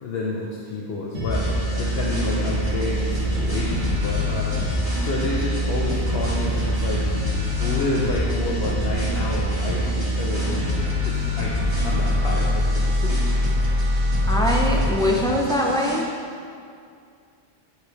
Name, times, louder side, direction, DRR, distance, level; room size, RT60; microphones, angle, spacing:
voice 1, 0.0-7.0 7.6-10.6 11.0-13.2, left 2 dB, 65° left, -3 dB, 0.9 m, -29 dB
sound 1, 1.1-14.9, left 1 dB, 60° right, 1.8 m, -24 dB
sound 2, 1.3-16.0, equal, 80° right, 2.0 m, -31 dB
voice 2, 14.3-16.1, left 1 dB, 5° left, -2 dB, 0.3 m, -22 dB
9.4 x 4.9 x 3.1 m, 2.3 s
omnidirectional pair, 1.2 m